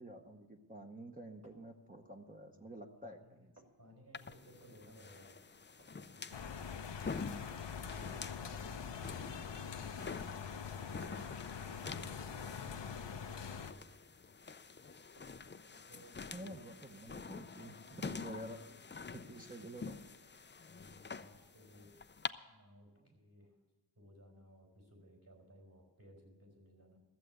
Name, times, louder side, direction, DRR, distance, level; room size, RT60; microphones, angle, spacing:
voice 1, 0.0-3.5 16.3-18.6 19.1-20.0, right 1 dB, 20° right, 2 dB, 0.9 m, -49 dB
sound 1, 1.4-1.7 2.3-2.9 3.2-3.8 4.6-5.0 5.3-5.4 5.6-6.2 6.5-6.6 7.2-7.6 8.2-8.4 9.3-9.4 9.9-11.2 11.6-11.8 12.6-13.0 14.0-14.6 15.0-16.0 16.5-16.8, right 1 dB, 35° right, 2.2 m, -67 dB
voice 2, 3.0-3.4 3.8-5.4 5.9-6.6 7.3-9.4 11.6-13.6 15.3-16.5 20.7-21.9 22.5-23.5 23.9-27.0, equal, 55° right, 0 dB, 5.0 m, -61 dB
sound 2, 4.1-22.3, left 4 dB, 25° left, 0.4 m, -47 dB
sound 3, 6.3-13.7, left 6 dB, 70° left, 0.7 m, -44 dB
14.0 x 7.5 x 8.0 m, 1.2 s
wide cardioid pair, 55°, 44 cm